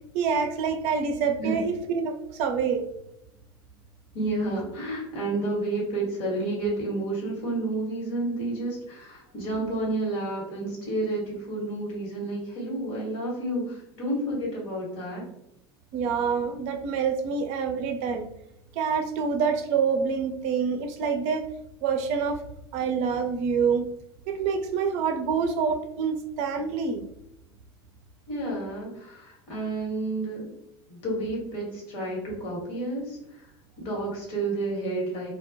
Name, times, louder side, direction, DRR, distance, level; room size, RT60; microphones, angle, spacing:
voice 1, 0.1-2.9 15.9-18.3 18.8-21.5 21.8-22.4 22.7-23.9 24.3-27.0, right 6 dB, 55° right, 6 dB, 0.4 m, -26 dB
voice 2, 4.1-15.3 28.3-30.5 30.9-33.4 33.8-35.3, right 2 dB, 60° left, -2 dB, 1.2 m, -30 dB
2.3 x 2.1 x 2.6 m, 0.79 s
hypercardioid pair, 75°, 14 cm